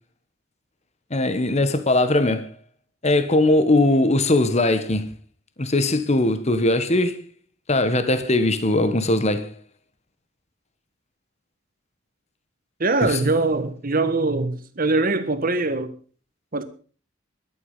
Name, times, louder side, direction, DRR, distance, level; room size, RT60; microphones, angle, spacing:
voice 1, 1.1-2.5 3.0-5.1 5.6-7.2 7.7-9.5 13.0-13.2, left 2 dB, 35° left, 1.4 m, -20 dB
voice 2, 12.8-15.9 16.5-16.6, right 3 dB, 45° right, 1.5 m, -22 dB
14.0 x 12.0 x 5.7 m
head